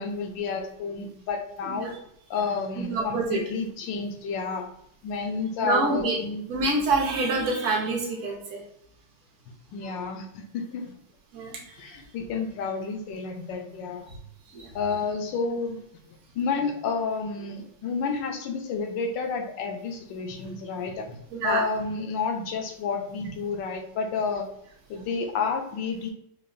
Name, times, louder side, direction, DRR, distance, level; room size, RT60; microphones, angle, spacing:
voice 1, 0.0-1.9 2.3-4.7 5.0-6.4 9.7-10.9 11.8-14.1 14.7-15.8 16.3-21.2 21.4-24.5 24.9-26.1, left 5 dB, 75° left, 4 dB, 1.3 m, -30 dB
voice 2, 1.6-2.0 2.8-3.4 5.6-6.2 6.5-8.6 9.8-10.0 11.3-11.8 14.5-14.7 20.4-20.5 21.3-21.7, right 3 dB, 50° right, -1 dB, 1.0 m, -27 dB
4.8 x 2.5 x 2.6 m, 0.72 s
omnidirectional pair, 2.1 m